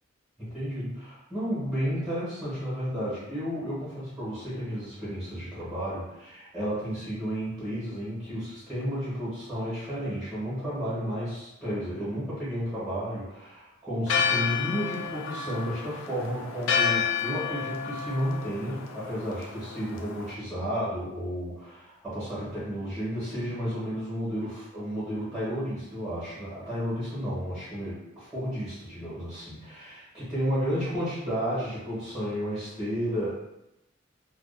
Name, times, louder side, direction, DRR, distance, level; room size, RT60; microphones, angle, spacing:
voice 1, 0.4-33.4, equal, 5° right, -11 dB, 1.0 m, -32 dB
Church bell, 14.1-20.3, left 6 dB, 75° left, 0.3 m, -30 dB
2.3 x 2.3 x 2.4 m, 0.89 s
head